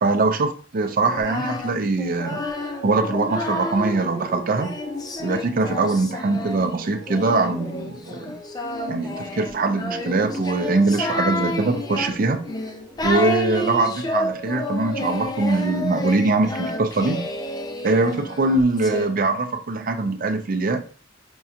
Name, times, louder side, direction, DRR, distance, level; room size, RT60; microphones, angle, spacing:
voice 1, 0.0-2.4 2.8-4.7 5.2-8.4 8.9-12.4 13.0-17.2 17.8-20.8, right 3 dB, 50° right, 7 dB, 0.5 m, -22 dB
Singing, 1.0-4.0 4.6-19.1, left 1 dB, 20° left, 0.4 m, -30 dB
sound 1, 2.1-18.4, right 2 dB, 20° right, 1.4 m, -42 dB
5.3 x 2.7 x 2.4 m, 0.41 s
head